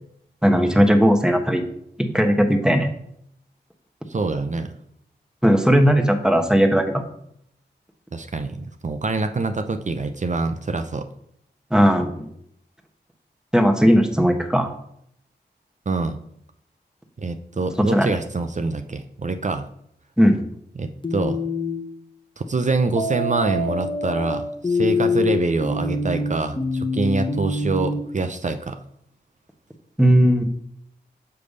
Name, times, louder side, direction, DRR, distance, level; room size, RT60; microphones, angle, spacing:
voice 1, 0.4-1.6 2.0-2.9 5.4-7.0 11.7-12.3 13.5-14.7 17.9-18.1 20.2-20.4 30.0-30.4, equal, 5° right, 5 dB, 1.1 m, -17 dB
voice 2, 4.1-4.7 8.1-11.1 15.9-16.2 17.2-19.7 20.8-21.4 22.4-28.8, right 3 dB, 40° right, 8 dB, 0.5 m, -25 dB
sound 1, 21.0-21.8 23.0-28.0, left 3 dB, 25° left, 0.9 m, -24 dB
6.8 x 3.3 x 5.3 m, 0.71 s
cardioid pair, 40°, 19 cm